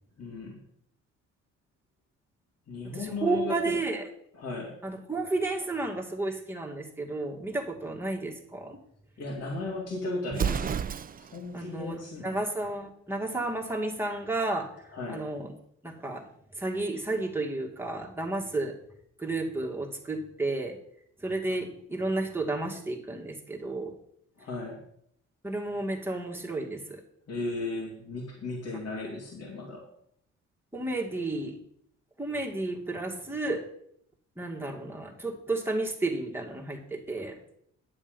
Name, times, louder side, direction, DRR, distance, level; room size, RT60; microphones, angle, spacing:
voice 1, 0.2-0.6 2.7-3.8 4.3-4.8 9.2-10.8 11.2-12.4 14.9-15.3 24.4-24.8 27.3-29.9, left 2 dB, 55° left, -1 dB, 2.7 m, -36 dB
voice 2, 2.9-4.0 4.8-8.8 11.5-14.7 15.1-15.5 15.8-16.2 16.6-18.7 19.2-20.8 21.2-23.9 25.4-27.0 30.7-31.6 32.2-33.6 34.4-37.4, right 2 dB, 5° right, 0 dB, 2.1 m, -32 dB
Explosion, 10.3-11.4, right 7 dB, 30° right, 0.4 m, -30 dB
10.5 x 7.2 x 5.3 m, 0.70 s
cardioid pair, 90°, 30 cm